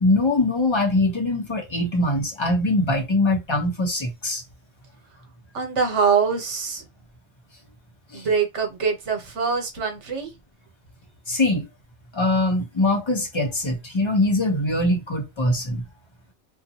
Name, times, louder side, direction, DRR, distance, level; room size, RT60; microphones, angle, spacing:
voice 1, 0.0-4.4 8.1-8.3 11.3-11.7 12.1-15.8, left 2 dB, 25° left, 0.8 m, -22 dB
voice 2, 5.5-6.8 8.1-10.3, right 6 dB, 70° right, 1.2 m, -24 dB
2.6 x 2.4 x 2.8 m
omnidirectional pair, 1.2 m